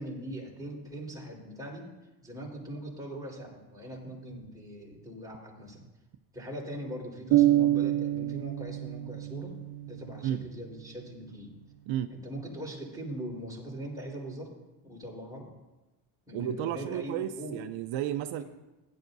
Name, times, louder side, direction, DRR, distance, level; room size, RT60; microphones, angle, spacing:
voice 1, 0.0-1.9 2.2-5.8 6.3-9.6 9.8-11.5 12.1-14.5 14.8-15.5 16.3-17.6, right 1 dB, 5° right, -4 dB, 4.2 m, -41 dB
sound 1, 7.3-11.1, right 14 dB, 55° right, 1.0 m, -27 dB
voice 2, 16.3-18.4, right 11 dB, 80° right, 9 dB, 0.7 m, -32 dB
16.0 x 11.0 x 2.7 m, 1.1 s
cardioid pair, 95°, 46 cm